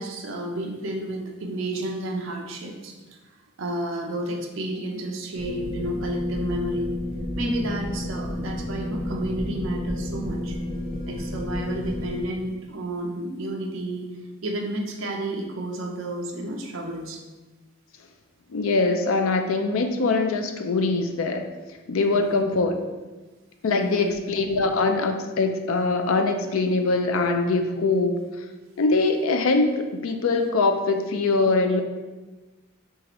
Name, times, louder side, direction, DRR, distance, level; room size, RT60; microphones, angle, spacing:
voice 1, 0.0-2.9 3.6-6.9 7.4-10.6 11.1-14.1 14.4-17.2 22.1-22.4 23.7-24.2, right 1 dB, 65° right, 0 dB, 0.6 m, -31 dB
sound 1, 5.4-12.2, left 1 dB, 5° right, 0.9 m, -31 dB
voice 2, 18.5-21.5 21.9-22.8 23.6-28.2 28.8-31.8, left 3 dB, 75° left, 6 dB, 0.4 m, -23 dB
6.2 x 2.5 x 3.0 m, 1.2 s
head